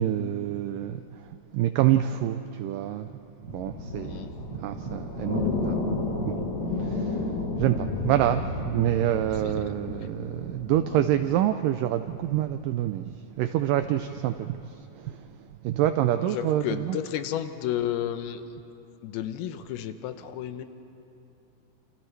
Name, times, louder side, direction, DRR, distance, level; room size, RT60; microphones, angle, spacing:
voice 1, 0.0-6.4 6.7-17.0, right 12 dB, 85° right, 9 dB, 1.9 m, -27 dB
sound 1, 3.5-11.0, left 3 dB, 50° left, 3.8 m, -32 dB
voice 2, 16.2-18.4 19.0-20.6, left 11 dB, 85° left, 9 dB, 2.7 m, -32 dB
28.0 x 28.0 x 3.3 m, 2.9 s
omnidirectional pair, 4.4 m